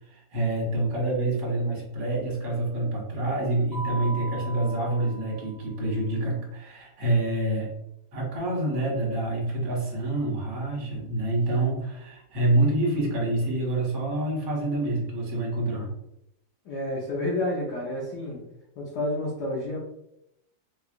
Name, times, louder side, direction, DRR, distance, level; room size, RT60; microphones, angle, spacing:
voice 1, 0.1-7.7 8.1-15.9, right 2 dB, 55° right, -4 dB, 1.8 m, -27 dB
Mallet percussion, 3.7-5.8, right 2 dB, 40° left, 1.0 m, -38 dB
voice 2, 16.6-18.4 18.8-19.8, left 1 dB, 60° left, -5 dB, 1.2 m, -29 dB
4.6 x 2.4 x 2.4 m, 0.81 s
omnidirectional pair, 2.4 m